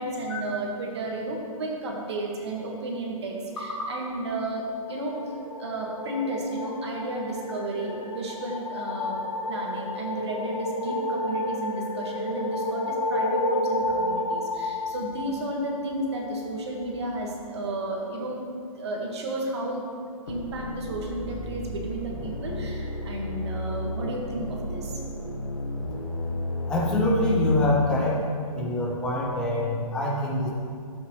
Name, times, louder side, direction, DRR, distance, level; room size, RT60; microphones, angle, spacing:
voice 1, 0.0-5.2 5.6-9.2 9.5-18.4 18.8-19.8 20.3-25.0, right 2 dB, 50° right, -1 dB, 1.7 m, -33 dB
sound 1, 4.6-16.1, left 1 dB, 70° left, 2.0 m, -31 dB
sound 2, 20.3-27.6, left 1 dB, 85° left, 1.4 m, -33 dB
voice 2, 26.7-28.2 28.5-30.5, left 1 dB, 5° left, -3 dB, 0.5 m, -25 dB
11.5 x 7.9 x 3.2 m, 2.3 s
hypercardioid pair, 175°, 18 cm